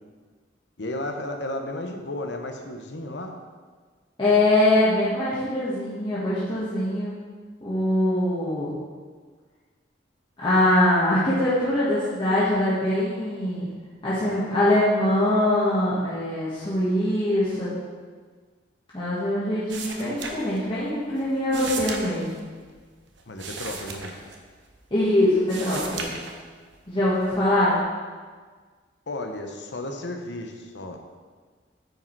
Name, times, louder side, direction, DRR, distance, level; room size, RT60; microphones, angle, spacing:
voice 1, 0.8-3.3 23.3-24.2 29.1-31.0, left 1 dB, 75° left, 4 dB, 0.9 m, -33 dB
voice 2, 4.2-7.1 7.6-8.7 10.4-13.7 14.0-17.7 18.9-22.4 24.9-26.1 26.9-27.8, left 1 dB, 30° left, -10 dB, 1.6 m, -23 dB
sound 1, 19.7-20.9 21.2-24.9 25.3-26.7 27.2-27.8, right 4 dB, 85° right, 1.0 m, -36 dB
9.3 x 5.0 x 4.6 m, 1.5 s
head